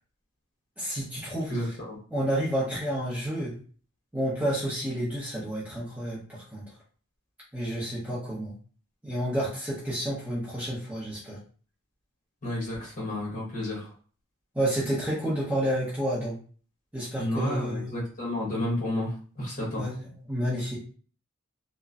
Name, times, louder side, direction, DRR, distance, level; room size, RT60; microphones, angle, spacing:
voice 1, 0.8-1.8 2.1-3.6 4.1-6.6 7.5-8.5 9.0-11.4 14.5-16.4 16.9-17.9 19.8-20.8, equal, 5° right, -8 dB, 0.8 m, -30 dB
voice 2, 1.5-2.0 12.4-13.9 17.2-19.9, left 1 dB, 40° left, -5 dB, 1.1 m, -31 dB
2.9 x 2.1 x 2.5 m, 0.42 s
head